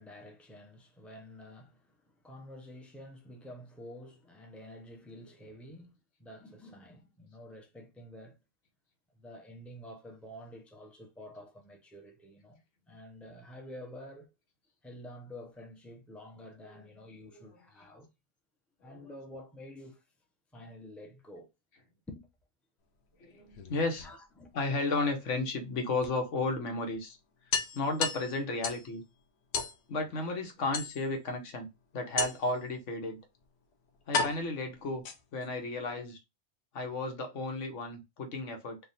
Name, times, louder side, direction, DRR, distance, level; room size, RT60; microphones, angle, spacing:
voice 1, 0.0-5.9 6.2-8.4 9.1-14.3 14.8-18.1 18.8-20.0 20.5-21.5 22.1-22.3 24.0-24.5, left 1 dB, ahead, 0.6 m, -49 dB
voice 2, 18.8-19.2 23.2-24.1 24.5-27.2 27.7-29.0 29.9-31.7 31.9-33.2 34.1-35.0 35.3-36.2 36.7-38.8, left 2 dB, 90° left, 1.3 m, -33 dB
sound 1, 23.4-24.5 26.0-26.1 26.5-26.6 26.9-27.0 27.5-28.9 29.5-29.8 30.7-31.3 32.2-32.6 33.4-33.5 34.1-35.5, left 4 dB, 65° left, 0.9 m, -34 dB
3.3 x 2.6 x 4.0 m
omnidirectional pair, 1.2 m